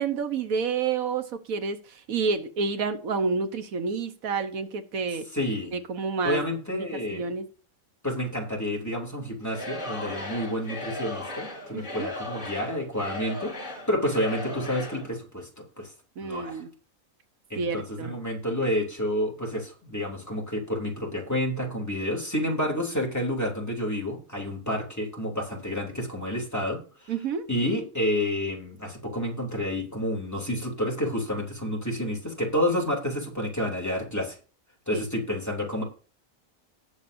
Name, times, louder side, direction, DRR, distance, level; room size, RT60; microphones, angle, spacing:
voice 1, 0.0-5.3 5.7-6.4 6.7-6.8 7.1-7.5 11.7-12.1 16.2-16.7 17.6-18.1 27.1-27.5 34.9-35.0, right 5 dB, 85° right, 1.5 m, -29 dB
voice 2, 5.3-5.7 6.2-7.2 8.0-15.9 16.2-16.6 17.5-27.1 27.5-34.4 34.9-35.8, left 1 dB, 10° left, 2.8 m, -29 dB
Singing / Crowd, 9.4-15.1, left 1 dB, 40° left, 3.3 m, -37 dB
19.0 x 7.3 x 2.7 m
omnidirectional pair, 1.4 m